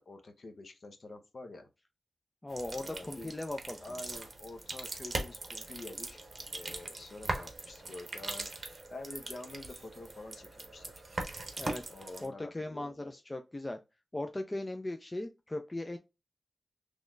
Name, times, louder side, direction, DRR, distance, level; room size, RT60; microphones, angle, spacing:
voice 1, 0.0-1.7 2.7-3.3 3.8-6.2 6.5-8.5 8.9-10.9 11.9-13.1, left 2 dB, 50° left, 0.7 m, -47 dB
voice 2, 2.4-3.8 11.6-11.8 12.2-13.8 14.1-16.0, left 1 dB, 20° left, 0.3 m, -38 dB
sound 1, 2.5-12.3, right 2 dB, 35° right, 0.8 m, -41 dB
3.9 x 3.0 x 2.5 m
wide cardioid pair, 145°, 0 cm